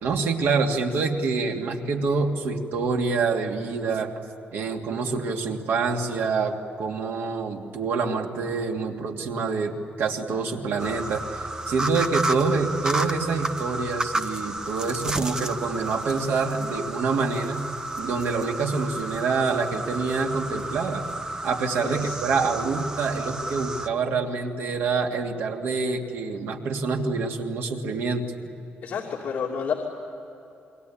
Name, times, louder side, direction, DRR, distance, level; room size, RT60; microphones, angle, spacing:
voice 1, 0.0-4.1 4.5-17.6 18.0-21.0 21.4-28.3, right 4 dB, 85° right, 2 dB, 2.9 m, -26 dB
sound 1, 10.8-23.9, right 2 dB, 20° right, 1.0 m, -32 dB
voice 2, 21.8-22.1 28.8-29.7, left 6 dB, 50° left, -3 dB, 3.0 m, -30 dB
28.5 x 22.5 x 8.9 m, 2.9 s
wide cardioid pair, 175°, 4 cm